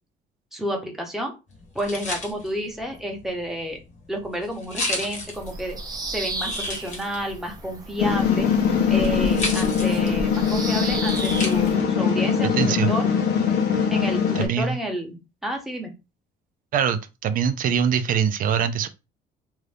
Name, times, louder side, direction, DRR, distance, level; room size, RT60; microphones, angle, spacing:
voice 1, 0.5-1.3 1.7-3.8 4.1-5.8 6.1-8.5 8.9-13.1 13.9-15.9, right 1 dB, ahead, 1.0 m, -30 dB
sound 1, 1.5-12.0, left 2 dB, 45° left, 1.1 m, -35 dB
Bird vocalization bird call bird song, 5.3-11.8, right 2 dB, 25° right, 0.8 m, -34 dB
sound 2, 8.0-14.5, left 7 dB, 80° left, 0.9 m, -22 dB
voice 2, 12.5-12.9 14.4-14.8 16.7-18.9, right 7 dB, 55° right, 0.4 m, -23 dB
2.7 x 2.5 x 3.3 m
cardioid pair, 110°, 17 cm